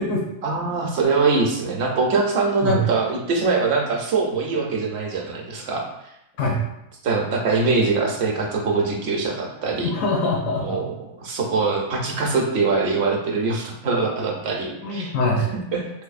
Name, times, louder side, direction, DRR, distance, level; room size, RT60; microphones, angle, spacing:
voice 1, 0.4-5.8 7.0-9.9 10.6-10.8 11.2-15.1 15.7-15.8, right 4 dB, 60° right, 0 dB, 0.8 m, -23 dB
voice 2, 9.8-10.9 14.8-15.5, left 2 dB, 80° left, -1 dB, 1.0 m, -23 dB
3.4 x 3.3 x 2.4 m, 0.85 s
omnidirectional pair, 1.4 m